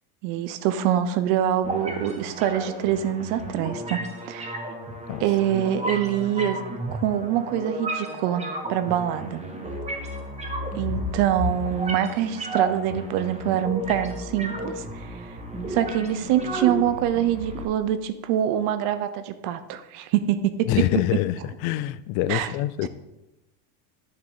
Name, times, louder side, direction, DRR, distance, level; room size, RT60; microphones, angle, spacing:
voice 1, 0.2-4.6 5.2-6.6 6.9-9.4 10.7-15.3 15.7-20.9 22.3-22.5 22.8-22.9, right 10 dB, 65° right, 12 dB, 1.0 m, -25 dB
sound 1, 1.6-17.6, right 1 dB, 15° right, 1.4 m, -33 dB
voice 2, 20.7-22.9, left 14 dB, 50° left, 16 dB, 0.5 m, -25 dB
10.5 x 3.7 x 7.4 m, 0.98 s
supercardioid pair, 130°, 49 cm